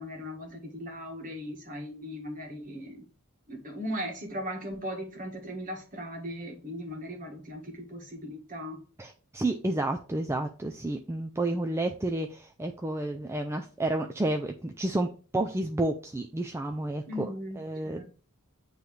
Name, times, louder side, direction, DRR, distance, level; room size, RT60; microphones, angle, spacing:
voice 1, 0.0-3.1 3.5-8.8 17.1-17.6 17.8-18.1, equal, 40° right, 2 dB, 1.6 m, -38 dB
voice 2, 9.0-17.3 17.6-18.0, right 2 dB, 10° right, 4 dB, 0.4 m, -30 dB
9.1 x 3.2 x 3.2 m, 0.37 s
head